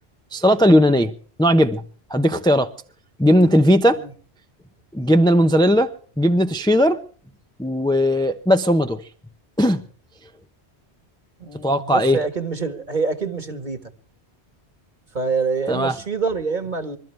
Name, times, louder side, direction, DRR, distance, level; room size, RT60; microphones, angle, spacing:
voice 1, 0.3-1.1 1.4-1.8 2.1-2.7 3.2-4.0 4.9-5.9 6.2-7.0 7.6-9.0 9.6-9.8 11.6-12.2 15.7-16.0, equal, 5° left, 0.7 m, -17 dB
voice 2, 11.4-13.8 15.1-17.0, right 4 dB, 45° right, 1.8 m, -26 dB
26.5 x 13.0 x 3.4 m
omnidirectional pair, 1.1 m